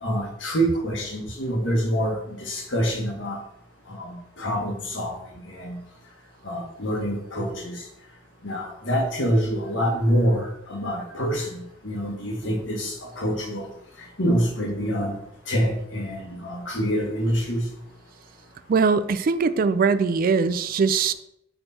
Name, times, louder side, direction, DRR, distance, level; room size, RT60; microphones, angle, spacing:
voice 1, 0.0-3.4 3.9-5.2 5.5-5.8 6.4-7.8 8.4-13.7 14.2-15.1 15.5-17.6, equal, 75° left, 0 dB, 1.7 m, -26 dB
voice 2, 18.7-21.1, right 5 dB, 50° right, 13 dB, 0.4 m, -21 dB
6.6 x 4.4 x 4.3 m, 0.78 s
head